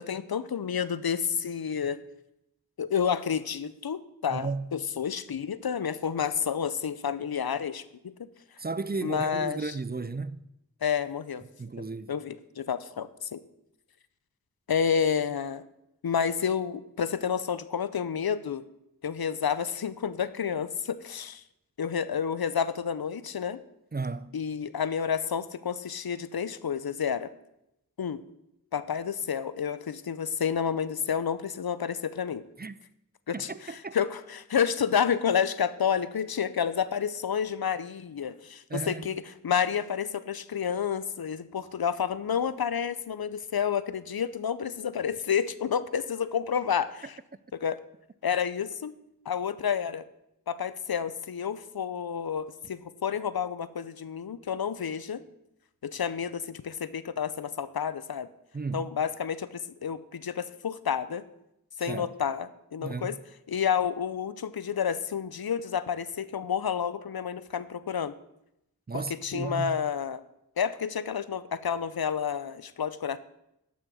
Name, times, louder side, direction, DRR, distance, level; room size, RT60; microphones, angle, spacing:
voice 1, 0.0-2.0 2.8-8.1 9.0-9.7 10.8-11.4 12.1-13.4 14.7-15.6 16.0-18.6 19.0-21.4 21.8-23.6 24.3-27.3 28.0-28.2 28.7-32.4 33.3-47.2 47.6-47.8 48.2-48.9 49.3-50.1 50.5-55.2 55.8-58.3 58.7-61.2 61.8-63.2 63.5-68.1 68.9-70.2 70.6-73.2, left 7 dB, 90° left, 0.6 m, -30 dB
voice 2, 4.3-4.7 8.6-10.4 11.6-12.1 23.9-24.4 32.6-32.7 33.3-34.0 38.7-39.1 58.5-58.8 61.8-62.1 62.8-63.2 68.9-69.7, right 3 dB, 25° right, 0.4 m, -34 dB
12.0 x 6.3 x 6.2 m
wide cardioid pair, 50°, 36 cm